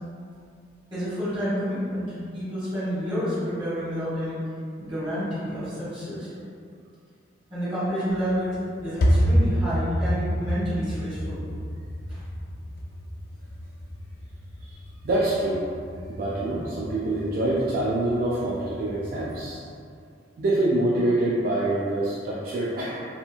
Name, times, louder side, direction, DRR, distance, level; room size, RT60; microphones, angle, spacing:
voice 1, 0.9-2.1 2.3-4.4 4.8-6.3 7.5-11.4 12.1-12.2, equal, 30° right, -13 dB, 1.5 m, -29 dB
sound 1, 8.2-19.5, equal, 55° left, 0.3 m, -29 dB
voice 2, 15.0-15.7 16.1-19.6 20.4-23.0, right 1 dB, 50° right, -7 dB, 0.3 m, -25 dB
2.9 x 2.5 x 2.3 m, 2.3 s
head